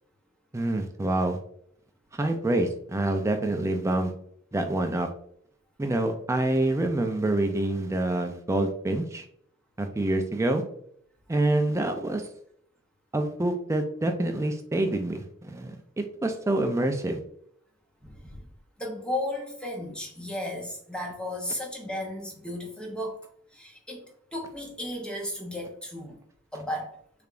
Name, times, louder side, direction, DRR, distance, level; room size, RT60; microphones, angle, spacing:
voice 1, 0.5-1.4 2.1-4.1 4.5-5.1 5.8-9.2 9.8-10.6 11.3-12.3 13.1-17.2, right 1 dB, 15° right, 6 dB, 0.3 m, -26 dB
voice 2, 18.0-18.4 18.8-23.2 23.5-24.1 24.3-26.2 26.5-26.9, left 1 dB, 5° left, -1 dB, 0.7 m, -34 dB
3.4 x 3.3 x 2.4 m, 0.65 s
head